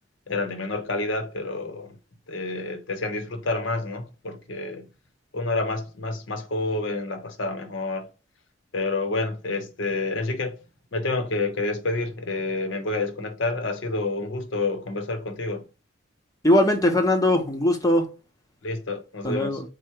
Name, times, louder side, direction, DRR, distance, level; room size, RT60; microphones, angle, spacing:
voice 1, 0.3-2.0 2.3-4.9 5.3-8.1 8.7-10.6 10.9-15.7 18.6-19.6, left 2 dB, 65° left, 0.8 m, -29 dB
voice 2, 16.4-18.1 19.2-19.6, left 1 dB, 20° left, 0.7 m, -20 dB
4.6 x 2.1 x 4.5 m
head